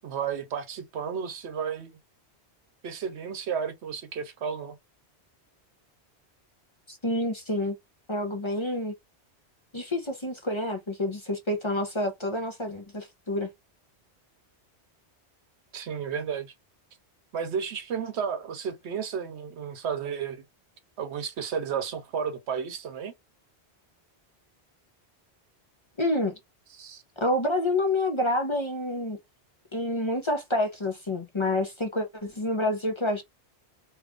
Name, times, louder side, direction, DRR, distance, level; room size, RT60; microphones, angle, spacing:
voice 1, 0.0-1.9 2.8-4.8 15.7-16.5 17.3-20.4 21.0-23.1 26.7-27.0, right 7 dB, 80° right, 1.0 m, -32 dB
voice 2, 6.9-7.8 8.1-8.9 9.7-13.5 26.0-26.4 27.2-29.2 29.7-33.2, left 1 dB, 30° left, 0.7 m, -28 dB
2.9 x 2.4 x 3.5 m
omnidirectional pair, 1.1 m